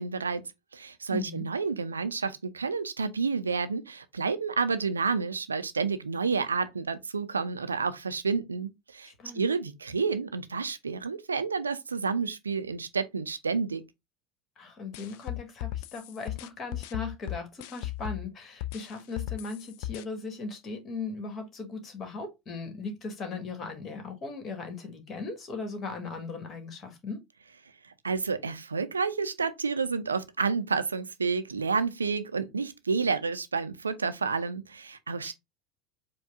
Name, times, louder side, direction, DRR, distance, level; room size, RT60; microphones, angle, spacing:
voice 1, 0.0-13.8 27.8-35.3, right 5 dB, 85° right, 0.4 m, -30 dB
voice 2, 1.1-1.4 9.0-9.4 14.6-27.2 35.2-35.3, left 4 dB, 35° left, 1.5 m, -38 dB
sound 1, 14.9-18.3 18.6-20.0, left 14 dB, 60° left, 0.3 m, -36 dB
4.7 x 2.2 x 3.5 m
figure-of-eight pair, 75°, 0 cm